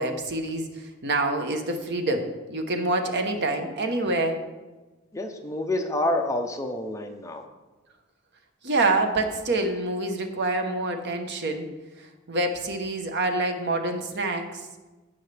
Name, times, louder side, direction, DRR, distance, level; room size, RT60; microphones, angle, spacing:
voice 1, 0.0-4.5 8.6-11.7 12.0-14.7, right 2 dB, 55° right, 5 dB, 1.0 m, -27 dB
voice 2, 5.1-7.4, left 1 dB, 15° left, 4 dB, 0.6 m, -28 dB
16.0 x 5.6 x 3.4 m, 1.2 s
head